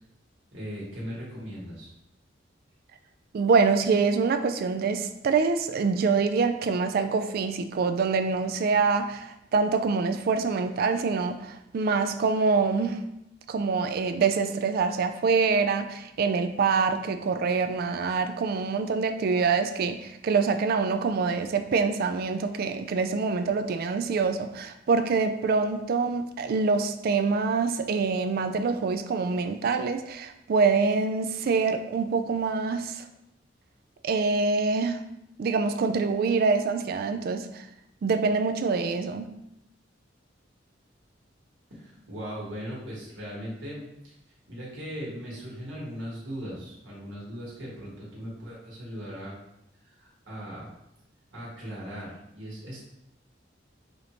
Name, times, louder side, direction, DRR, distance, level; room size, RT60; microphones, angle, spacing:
voice 1, 0.5-1.9 41.7-44.1 44.5-49.3 49.8-50.7 51.3-52.8, equal, 85° right, -5 dB, 1.5 m, -38 dB
voice 2, 3.3-13.0 13.5-33.0 34.0-35.0 35.4-37.7 38.0-39.3, right 4 dB, 55° right, 8 dB, 0.3 m, -25 dB
4.9 x 2.6 x 3.0 m, 0.84 s
head